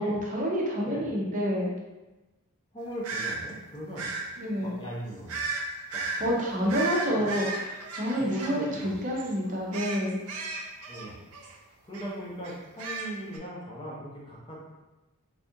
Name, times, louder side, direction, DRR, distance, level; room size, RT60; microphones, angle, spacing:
voice 1, 0.0-1.7 4.4-4.7 6.2-10.2, equal, 35° right, -3 dB, 0.7 m, -28 dB
voice 2, 2.7-4.1 4.6-5.4 5.9-6.3 6.6-6.7 7.1-7.3 8.1-8.9 10.9-11.1 11.8-14.6, equal, 25° left, -5 dB, 0.7 m, -39 dB
sound 1, 3.0-3.4 4.0-4.2 5.3-5.6 5.9-6.2 6.7-8.9 9.2-9.4 9.7-11.6 11.9-12.1 12.4-13.4, right 4 dB, 80° right, 0.5 m, -34 dB
3.4 x 2.5 x 2.7 m, 1.1 s
head